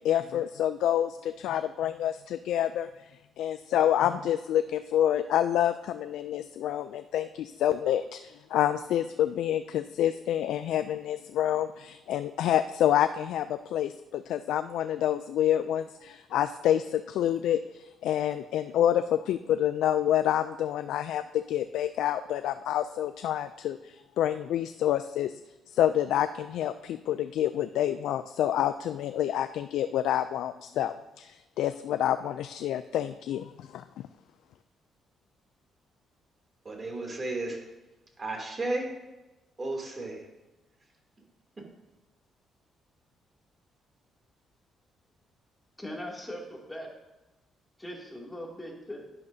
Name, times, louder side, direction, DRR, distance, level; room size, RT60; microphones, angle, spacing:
voice 1, 0.0-3.1 3.4-25.4 25.7-34.1, left 11 dB, 80° left, 11 dB, 0.3 m, -28 dB
voice 2, 36.6-37.6 38.2-38.9 39.6-40.2, right 2 dB, 30° right, 0 dB, 2.8 m, -33 dB
voice 3, 45.8-46.9 47.8-49.0, equal, 10° left, -2 dB, 2.6 m, -40 dB
10.5 x 10.5 x 2.7 m, 1.0 s
cardioid pair, 90°, 0 cm